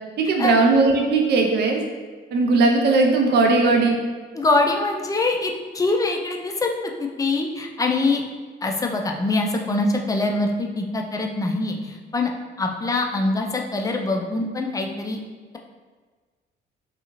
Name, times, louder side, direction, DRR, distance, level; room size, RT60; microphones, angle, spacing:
voice 1, 0.2-1.8 2.3-4.0, right 3 dB, 60° right, 2 dB, 0.4 m, -18 dB
voice 2, 4.3-6.7 7.0-8.2 8.6-12.3 12.6-15.2, left 2 dB, 15° left, 2 dB, 0.3 m, -23 dB
2.6 x 2.4 x 2.9 m, 1.4 s
cardioid pair, 90°, 20 cm